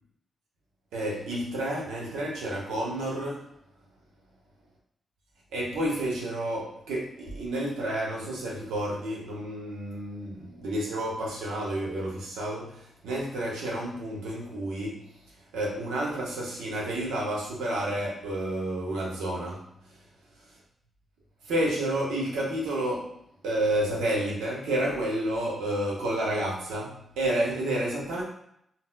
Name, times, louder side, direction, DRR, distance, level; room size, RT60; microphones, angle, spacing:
voice 1, 0.9-3.5 5.5-15.2 15.5-20.0 21.4-23.2 23.4-28.2, right 1 dB, 85° right, -3 dB, 0.8 m, -30 dB
4.1 x 2.0 x 2.2 m, 0.73 s
supercardioid pair, 50°, 0 cm